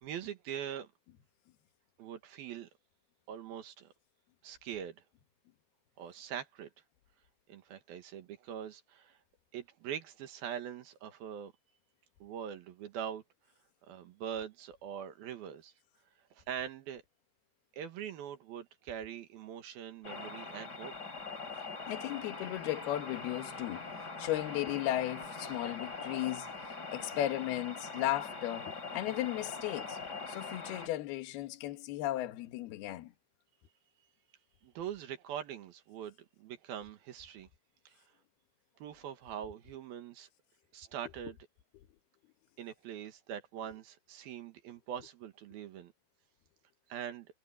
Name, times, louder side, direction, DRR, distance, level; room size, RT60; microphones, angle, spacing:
voice 1, 0.0-0.9 2.0-2.7 3.3-3.9 4.4-5.0 6.0-6.7 7.5-9.2 9.5-11.5 12.2-13.2 13.9-15.7 16.3-17.0 17.7-20.9 34.6-37.5 37.9-38.0 38.8-40.3 40.7-41.4 42.6-45.9 46.9-47.3, right 9 dB, 70° right, 3.2 m, -43 dB
sound 1, 20.0-30.9, left 4 dB, 25° left, 4.4 m, -43 dB
voice 2, 21.9-30.0 30.3-33.1, left 14 dB, 75° left, 3.2 m, -36 dB
omnidirectional pair, 4.7 m